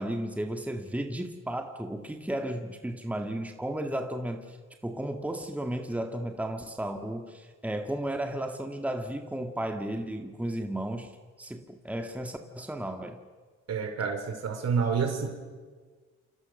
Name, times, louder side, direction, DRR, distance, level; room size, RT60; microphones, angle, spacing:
voice 1, 0.0-4.6 4.8-11.1 11.4-13.2, right 1 dB, 5° right, 4 dB, 2.1 m, -34 dB
voice 2, 13.7-15.3, right 6 dB, 55° right, 6 dB, 4.9 m, -28 dB
28.5 x 26.5 x 6.7 m, 1.4 s
cardioid pair, 90°, 30 cm